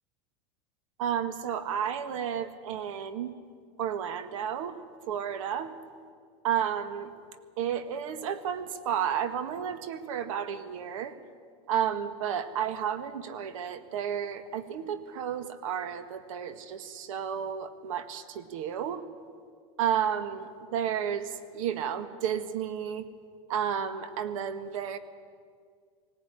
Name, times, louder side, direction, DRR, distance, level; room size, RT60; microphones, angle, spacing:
voice 1, 1.0-3.3 3.8-4.8 5.1-5.7 6.4-7.1 7.6-11.2 11.7-19.0 19.8-23.0 23.5-25.0, right 8 dB, 75° right, 11 dB, 1.7 m, -32 dB
19.5 x 17.5 x 10.0 m, 2.1 s
supercardioid pair, 155°, 17 cm